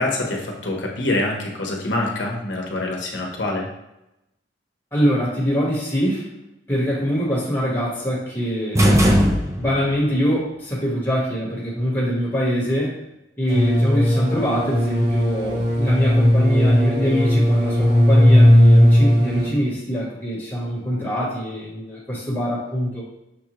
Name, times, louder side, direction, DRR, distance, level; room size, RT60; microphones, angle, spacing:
voice 1, 0.0-3.7, left 2 dB, 70° left, 0 dB, 0.9 m, -25 dB
voice 2, 4.9-6.3 6.7-8.8 9.6-13.0 13.4-23.0, equal, 10° left, -8 dB, 1.2 m, -23 dB
sound 1, 8.7-10.0, equal, 15° right, 0.5 m, -17 dB
sound 2, 13.5-19.5, equal, 60° right, 1.3 m, -16 dB
6.3 x 2.4 x 3.0 m, 0.89 s
head